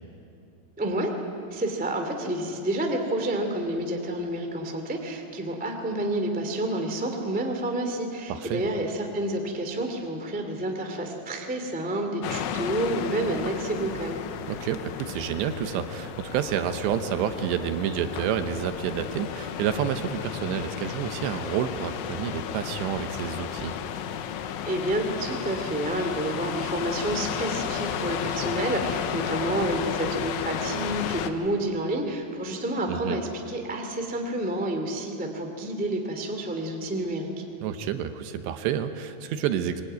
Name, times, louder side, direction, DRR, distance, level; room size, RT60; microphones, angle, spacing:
voice 1, 0.8-1.1 1.5-14.2 24.6-37.3, right 1 dB, 15° right, 3 dB, 0.3 m, -29 dB
voice 2, 8.3-8.6 14.5-23.8 32.9-33.2 37.6-39.8, right 9 dB, 75° right, 8 dB, 2.9 m, -29 dB
sound 1, 12.2-31.3, left 9 dB, 85° left, 3.5 m, -33 dB
25.0 x 22.0 x 9.5 m, 2.9 s
omnidirectional pair, 5.6 m